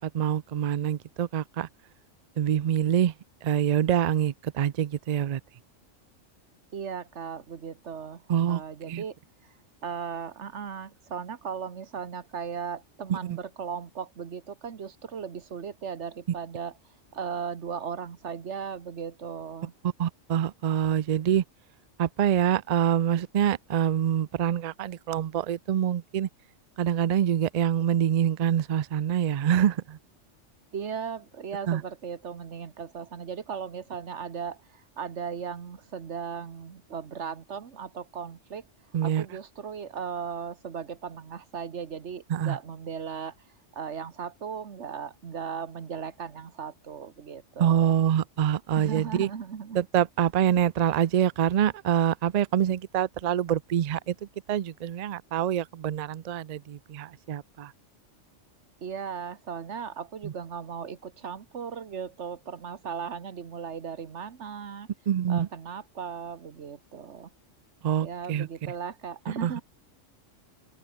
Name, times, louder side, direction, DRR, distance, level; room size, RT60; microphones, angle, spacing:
voice 1, 0.0-1.7 2.4-3.1 3.4-5.4 8.3-8.6 8.9-9.0 13.1-13.4 20.0-21.4 22.0-26.3 26.8-30.0 31.7-31.8 38.9-39.3 42.3-42.6 47.6-49.3 49.7-54.1 54.5-57.7 60.2-60.3 65.1-65.5 67.8-68.5 69.4-69.6, right 10 dB, 80° right, 0.3 m, -25 dB
voice 2, 6.7-9.2 9.4-9.5 9.8-16.8 17.1-19.7 30.7-38.6 39.0-43.5 43.7-47.9 48.7-49.8 58.8-64.9 65.3-67.3 68.0-69.6, right 7 dB, 65° right, 1.5 m, -37 dB
open air
omnidirectional pair, 1.3 m